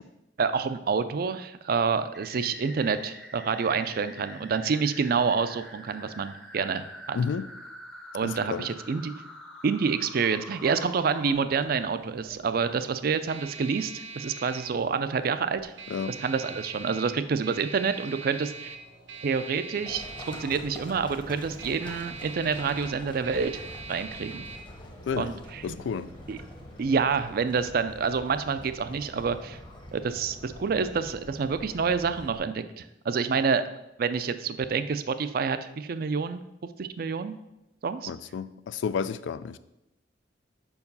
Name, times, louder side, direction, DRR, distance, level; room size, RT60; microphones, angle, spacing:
voice 1, 0.4-7.2 8.1-9.1 9.6-15.7 16.1-18.7 19.2-24.5 25.2-25.8 26.3-26.4 26.8-29.6 29.9-33.6 34.0-36.4 36.8-37.4 37.8-38.1, right 5 dB, 55° right, 0.4 m, -28 dB
sound 1, 2.1-11.3, left 1 dB, 5° left, 0.6 m, -46 dB
voice 2, 7.1-7.5 8.2-8.7 15.9-16.2 25.1-25.3 25.6-26.1 38.1-39.6, left 6 dB, 85° left, 0.3 m, -31 dB
sound 2, 10.5-27.4, right 3 dB, 85° right, 0.8 m, -44 dB
Livestock farm animals working animals, 19.9-32.4, left 1 dB, 25° left, 0.9 m, -45 dB
5.3 x 4.7 x 5.4 m
head